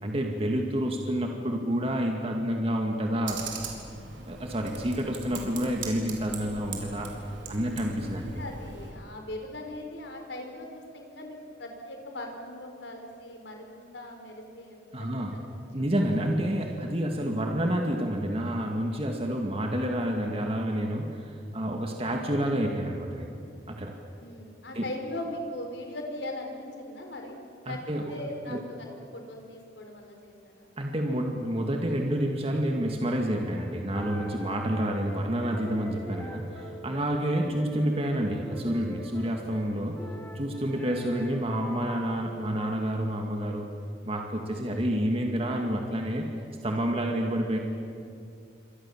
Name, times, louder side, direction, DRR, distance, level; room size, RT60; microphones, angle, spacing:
voice 1, 0.0-3.4 4.3-7.1 7.5-8.4 14.9-15.4 15.7-23.4 23.7-23.9 24.7-24.8 27.7-28.1 28.5-28.6 30.8-40.0 40.3-43.7 44.0-46.3 46.6-47.6, equal, 35° right, 2 dB, 2.1 m, -29 dB
Computer keyboard, 3.3-8.9, right 4 dB, 85° right, 4.3 m, -40 dB
voice 2, 7.4-7.9 8.2-15.2 15.6-15.9 24.2-30.7, left 1 dB, 75° left, 3 dB, 5.0 m, -40 dB
sound 1, 33.4-42.8, equal, 10° left, 2.5 m, -43 dB
28.5 x 25.5 x 7.4 m, 2.4 s
head